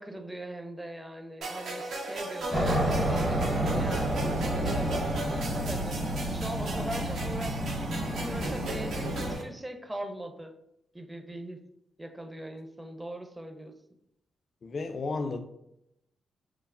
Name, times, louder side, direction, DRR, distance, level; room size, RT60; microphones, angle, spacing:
voice 1, 0.0-5.0 5.6-6.0 6.3-10.5 10.9-11.6 12.0-13.7, right 1 dB, 15° right, 5 dB, 0.5 m, -40 dB
sound 1, 1.4-9.4, right 2 dB, 75° right, 0.5 m, -37 dB
Aircraft, 2.5-9.4, right 1 dB, 50° right, 0.9 m, -30 dB
voice 2, 14.6-15.4, left 3 dB, 60° left, 7 dB, 0.3 m, -32 dB
3.1 x 2.0 x 2.4 m, 0.79 s
supercardioid pair, 45°, 0 cm